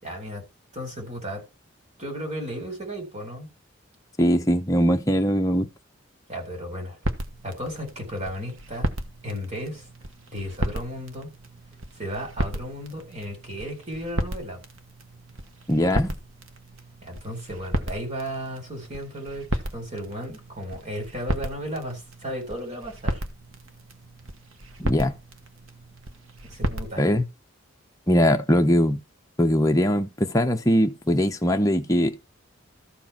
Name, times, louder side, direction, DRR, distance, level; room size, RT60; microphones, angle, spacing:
voice 1, 0.0-0.4 0.7-1.4 2.0-3.5 6.3-7.0 7.4-8.9 9.2-9.9 10.3-11.3 11.9-14.6 17.0-23.2 26.5-27.1, equal, 35° right, 4.3 m, -34 dB
voice 2, 4.2-5.7 15.7-16.2 24.8-25.2 27.0-27.3 28.1-29.0 29.4-32.2, equal, 15° left, 0.9 m, -21 dB
sound 1, 7.0-27.0, right 1 dB, 85° right, 1.3 m, -34 dB
13.5 x 4.6 x 5.9 m
head